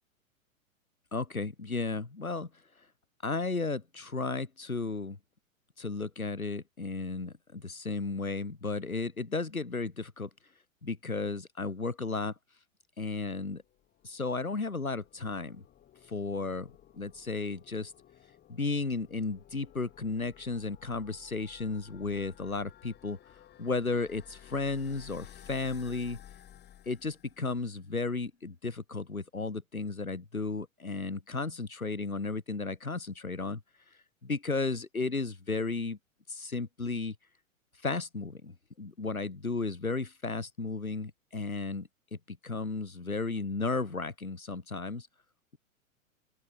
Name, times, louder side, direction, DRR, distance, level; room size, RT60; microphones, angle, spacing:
voice 1, 1.1-2.5 3.2-5.2 5.8-10.3 10.8-12.3 13.0-13.6 14.0-15.6 16.1-17.9 18.5-23.2 23.6-26.2 26.8-33.6 34.2-36.0 36.3-37.1 37.8-45.1, left 3 dB, 85° left, 3.2 m, -34 dB
sound 1, 13.6-27.8, left 11 dB, 25° left, 4.9 m, -55 dB
open air
figure-of-eight pair, 100°, 41 cm